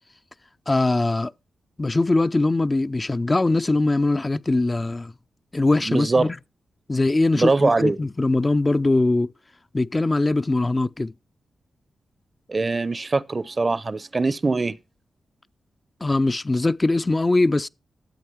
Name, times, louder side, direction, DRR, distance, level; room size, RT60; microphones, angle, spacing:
voice 1, 0.7-1.3 1.8-5.1 5.5-6.3 6.9-9.3 9.7-11.1 16.0-17.7, left 2 dB, 30° left, 0.5 m, -21 dB
voice 2, 5.9-6.3 7.3-8.0 12.5-14.8, right 3 dB, 40° right, 0.7 m, -22 dB
13.0 x 7.9 x 4.6 m
supercardioid pair, 45°, 0 cm